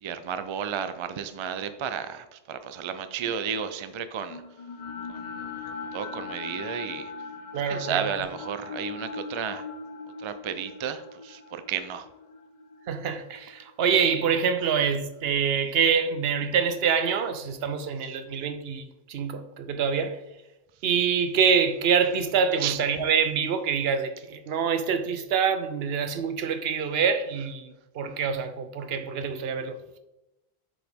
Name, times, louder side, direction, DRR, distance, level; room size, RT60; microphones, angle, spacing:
voice 1, 0.0-4.4 5.1-5.4 5.9-7.1 7.7-9.7 10.2-12.1 22.6-22.8, right 7 dB, 45° right, 0.4 m, -32 dB
sound 1, 4.3-14.5, left 4 dB, 40° left, 0.6 m, -40 dB
voice 2, 7.5-8.1 12.9-20.2 20.8-29.8, right 6 dB, 75° right, 0.9 m, -26 dB
7.2 x 4.9 x 3.5 m
omnidirectional pair, 1.0 m